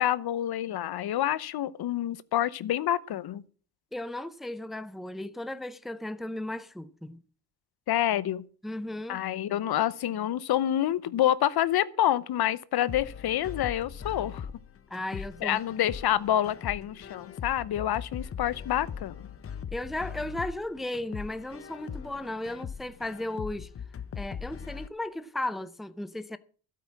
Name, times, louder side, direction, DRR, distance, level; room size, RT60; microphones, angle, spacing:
voice 1, 0.0-3.4 7.9-8.4 9.1-14.5 15.4-19.1, left 12 dB, 65° left, 0.9 m, -27 dB
voice 2, 3.9-7.2 8.6-9.2 14.9-15.6 19.7-23.7 24.2-26.4, left 1 dB, ahead, 0.6 m, -35 dB
sound 1, 12.9-24.9, left 7 dB, 35° left, 0.7 m, -40 dB
12.5 x 8.6 x 7.1 m
cardioid pair, 105°, 40 cm